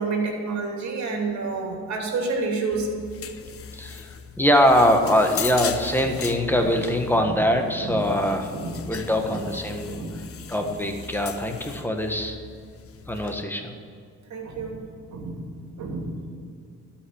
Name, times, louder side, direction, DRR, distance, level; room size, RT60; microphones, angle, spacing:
voice 1, 0.0-2.9 7.1-7.3 7.8-8.0 8.5-8.9 9.2-9.4 9.9-10.2 10.6-10.7 14.3-14.8 15.1-15.5 15.8-16.3, right 3 dB, 65° right, 1 dB, 2.8 m, -29 dB
sound 1, 2.7-13.4, left 7 dB, 50° left, 0.8 m, -38 dB
voice 2, 3.7-4.1 4.4-8.5 8.9-10.0 10.5-12.4 13.1-13.7, equal, 5° left, 4 dB, 1.4 m, -22 dB
12.5 x 5.8 x 8.7 m, 2.2 s
cardioid pair, 90°, 30 cm